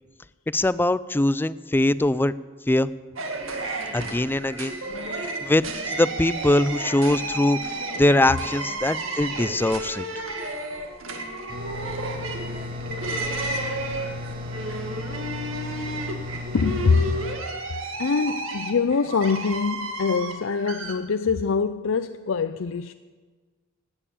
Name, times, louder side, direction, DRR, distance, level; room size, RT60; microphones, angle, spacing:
voice 1, 0.5-2.3 2.7-2.9 3.9-4.7 5.4-10.1, left 1 dB, 10° left, 17 dB, 0.4 m, -22 dB
sound 1, 3.2-20.9, right 2 dB, 80° right, 1.8 m, -32 dB
sound 2, 11.5-17.3, left 2 dB, 50° right, 2.2 m, -35 dB
voice 2, 16.5-17.2 18.0-22.9, left 5 dB, 70° left, 10 dB, 0.5 m, -24 dB
17.5 x 9.0 x 8.6 m, 1.4 s
head